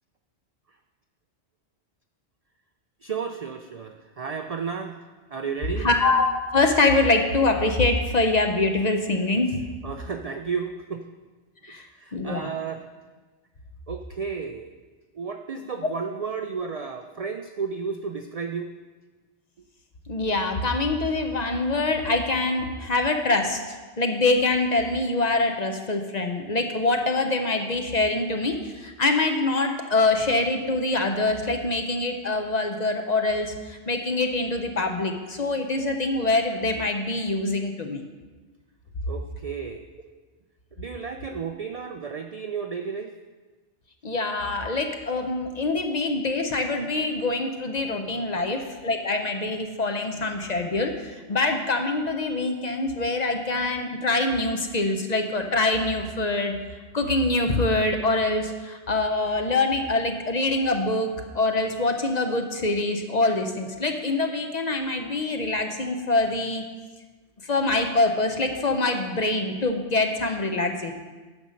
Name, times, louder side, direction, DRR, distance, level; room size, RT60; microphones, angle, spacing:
voice 1, 3.0-5.0 5.3-5.9 9.8-11.0 11.7-12.9 13.9-14.7 15.1-18.7 39.1-39.9 40.8-43.1 48.3-48.4, right 5 dB, 55° right, 5 dB, 0.4 m, -33 dB
voice 2, 5.8-6.2 6.5-9.6 11.6-11.8 12.1-12.5 20.1-38.0 44.0-56.5 56.9-66.6 67.4-70.9, left 2 dB, 45° left, 5 dB, 0.7 m, -24 dB
9.6 x 5.3 x 6.3 m, 1.3 s
omnidirectional pair, 1.2 m